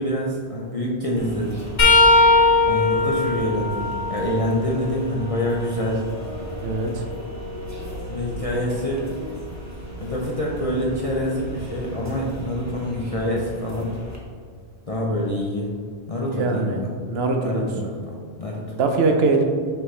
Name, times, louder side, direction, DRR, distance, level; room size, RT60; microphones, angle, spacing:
voice 1, 0.0-1.7 2.7-6.1 8.1-9.1 10.0-14.0 14.9-15.7 16.1-16.9 17.4-18.6, equal, 40° left, -3 dB, 0.7 m, -26 dB
sound 1, 1.2-14.2, equal, 15° right, 1.1 m, -36 dB
sound 2, 1.8-5.5 6.1-8.0 10.9-11.1 12.3-12.5 13.8-13.9, left 3 dB, 85° left, 1.8 m, -21 dB
voice 2, 6.6-7.0 16.4-16.8 17.1-17.7 18.8-19.4, right 3 dB, 75° right, 3 dB, 1.0 m, -21 dB
6.0 x 5.5 x 3.2 m, 2.1 s
omnidirectional pair, 1.1 m